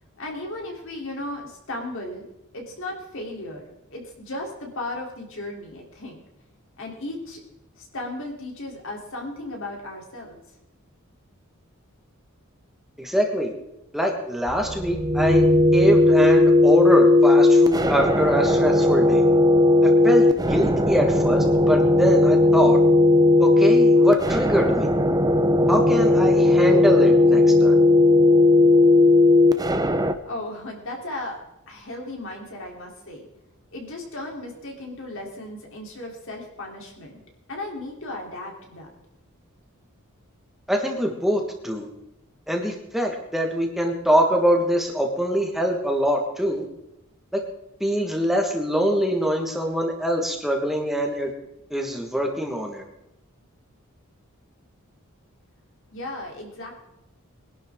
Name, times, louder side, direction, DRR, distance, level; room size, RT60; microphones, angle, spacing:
voice 1, 0.2-2.3 2.5-3.6 3.9-6.2 6.8-7.4 7.8-10.4 30.2-31.4 31.7-33.2 33.7-37.2 37.5-38.9 55.9-56.7, left 1 dB, 65° left, 0 dB, 3.4 m, -35 dB
voice 2, 13.0-13.5 13.9-15.4 15.7-19.3 19.8-22.8 23.4-24.9 25.7-27.8 40.7-41.9 42.5-46.6 47.3-47.4 47.8-51.3 51.7-52.8, equal, ahead, 1 dB, 1.5 m, -23 dB
sound 1, 14.5-30.1, left 2 dB, 20° right, 0.8 m, -17 dB
22.0 x 11.5 x 3.7 m, 0.91 s
head